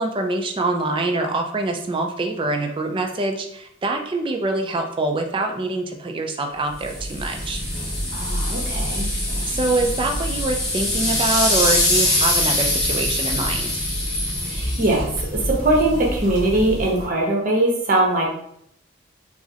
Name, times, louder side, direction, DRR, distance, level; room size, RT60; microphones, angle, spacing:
voice 1, 0.0-7.6 9.5-13.7, right 2 dB, 25° right, 4 dB, 0.3 m, -24 dB
sound 1, 6.8-17.0, left 1 dB, 20° left, 1.0 m, -24 dB
voice 2, 8.1-9.0 14.5-15.1 15.4-18.3, right 1 dB, 40° right, -2 dB, 0.8 m, -21 dB
4.6 x 2.0 x 2.8 m, 0.73 s
head